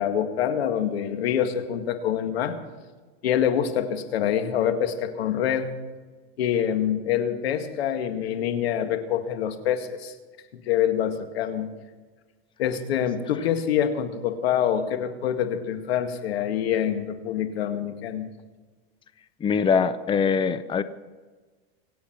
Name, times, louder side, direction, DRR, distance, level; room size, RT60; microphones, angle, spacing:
voice 1, 0.0-2.6 3.2-5.7 6.4-10.1 10.7-11.7 12.6-18.3, left 9 dB, 85° left, 7 dB, 2.0 m, -26 dB
voice 2, 19.4-20.8, left 6 dB, 15° left, 12 dB, 0.7 m, -22 dB
25.5 x 8.7 x 6.0 m, 1.3 s
supercardioid pair, 130°, 30 cm